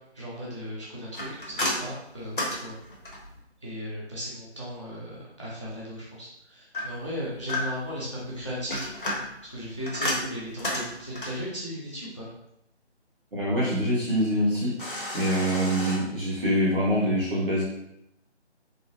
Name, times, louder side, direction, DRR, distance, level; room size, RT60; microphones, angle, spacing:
voice 1, 0.1-2.7 3.6-8.9 9.5-12.3, equal, 25° left, -6 dB, 0.5 m, -36 dB
sound 1, 1.1-3.4 6.7-8.0 8.5-11.5 14.8-16.0, left 1 dB, 50° left, 0.9 m, -32 dB
voice 2, 13.3-14.8 15.1-17.6, equal, 50° right, -6 dB, 1.3 m, -25 dB
3.8 x 2.1 x 2.7 m, 0.80 s
figure-of-eight pair, 160°, 34 cm